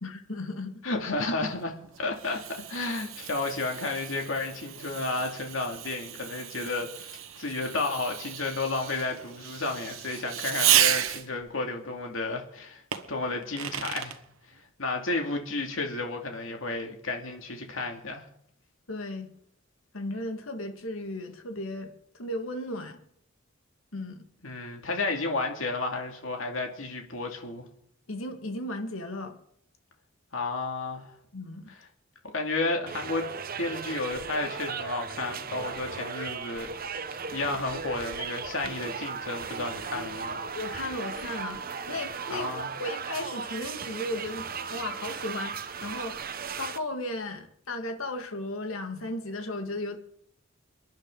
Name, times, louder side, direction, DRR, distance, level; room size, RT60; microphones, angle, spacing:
voice 1, 0.0-0.8 18.9-19.3 19.9-23.0 23.9-24.2 28.1-29.4 31.3-31.7 40.4-46.2 46.6-50.0, left 1 dB, 90° left, 2.0 m, -35 dB
voice 2, 0.8-1.7 2.0-12.8 13.1-14.1 14.8-18.2 24.4-27.6 30.3-31.1 31.7-31.8 32.3-33.3 33.6-36.7 37.1-40.4 42.3-42.7, left 3 dB, 75° left, 2.5 m, -32 dB
Fireworks, 1.6-11.5 12.9-14.2, right 11 dB, 80° right, 1.3 m, -32 dB
sound 1, 32.9-46.8, right 6 dB, 45° right, 0.9 m, -36 dB
30.0 x 10.5 x 3.9 m
head